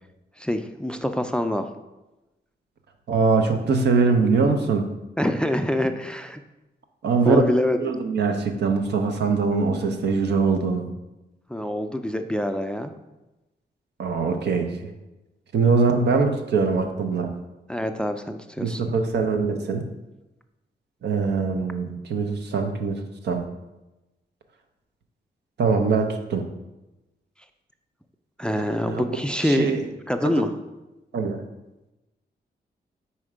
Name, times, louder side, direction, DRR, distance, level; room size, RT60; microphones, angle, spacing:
voice 1, 0.4-1.7 5.2-6.4 7.2-7.8 11.5-12.9 17.7-18.8 28.4-29.8 30.1-30.6, left 1 dB, 5° left, 7 dB, 0.3 m, -25 dB
voice 2, 3.1-4.9 7.0-7.4 7.8-10.9 14.0-14.9 15.5-17.3 18.6-19.8 21.0-23.5 25.6-26.5 28.6-29.9 30.2-30.5 31.1-31.4, right 4 dB, 85° right, 6 dB, 0.7 m, -23 dB
4.5 x 4.3 x 4.9 m, 1.0 s
wide cardioid pair, 110°, 17 cm